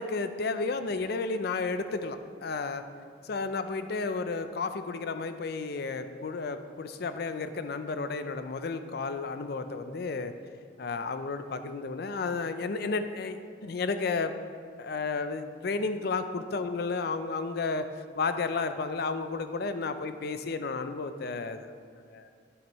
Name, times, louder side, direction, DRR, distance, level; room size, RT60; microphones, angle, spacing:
voice 1, 0.0-2.8 3.2-10.3 10.8-14.3 14.8-21.7 22.1-22.3, left 4 dB, 55° left, 10 dB, 0.4 m, -32 dB
8.8 x 7.9 x 3.0 m, 2.2 s
head